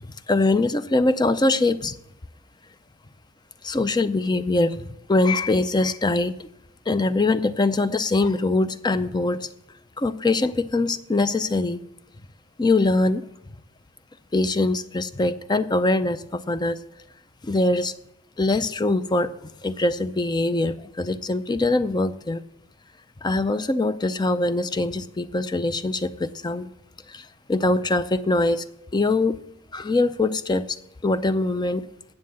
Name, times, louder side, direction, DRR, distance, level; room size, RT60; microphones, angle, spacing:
voice 1, 0.0-1.9 3.6-6.5 6.9-9.5 10.0-11.8 12.6-13.2 14.3-16.8 17.4-17.9 18.4-19.3 19.6-22.4 23.2-26.7 27.1-28.7 28.9-29.4 29.7-30.8 31.0-31.9, left 2 dB, 20° left, 13 dB, 0.5 m, -23 dB
9.4 x 7.6 x 7.6 m, 0.82 s
head